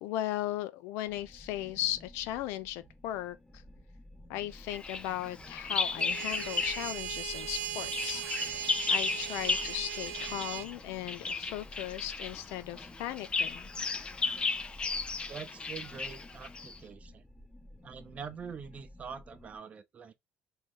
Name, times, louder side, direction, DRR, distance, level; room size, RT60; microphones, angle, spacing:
voice 1, 0.0-3.4 4.3-8.2 8.9-13.7, left 13 dB, 85° left, 0.5 m, -37 dB
sound 1, 1.1-19.6, left 1 dB, 10° left, 0.9 m, -53 dB
Bird vocalization bird call bird song, 4.7-7.0 7.3-16.8, left 4 dB, 25° left, 0.4 m, -35 dB
sound 2, 6.0-10.7, right 10 dB, 75° right, 0.5 m, -38 dB
voice 2, 15.3-17.2 17.8-20.1, right 6 dB, 35° right, 0.7 m, -44 dB
3.1 x 2.7 x 3.6 m
cardioid pair, 105°, 4 cm